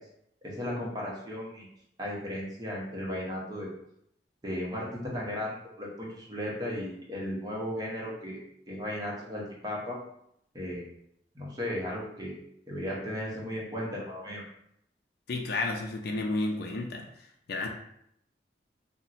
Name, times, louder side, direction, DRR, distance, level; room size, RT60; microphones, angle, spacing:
voice 1, 0.4-1.7 2.0-3.7 4.4-8.4 8.7-10.0 10.5-10.9 11.3-12.4 12.7-14.4, left 1 dB, 20° right, -4 dB, 0.8 m, -35 dB
voice 2, 15.3-17.1 17.5-17.7, left 2 dB, 60° left, 2 dB, 0.4 m, -31 dB
2.6 x 2.1 x 4.0 m, 0.73 s
head